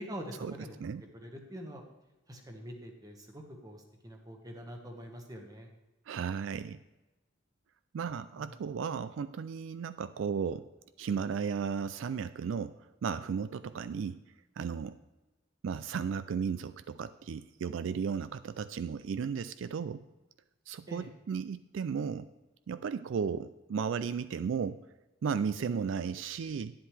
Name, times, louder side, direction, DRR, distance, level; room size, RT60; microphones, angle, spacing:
voice 1, 0.0-1.8 2.3-5.7 8.4-8.5 20.9-21.1, equal, 20° right, 3 dB, 1.3 m, -45 dB
voice 2, 6.1-6.8 7.9-10.7 11.0-14.2 14.6-15.0 15.6-20.0 20.7-22.3 22.7-24.8 25.2-26.7, right 6 dB, 70° right, 13 dB, 0.3 m, -35 dB
11.0 x 9.8 x 3.3 m, 1.1 s
head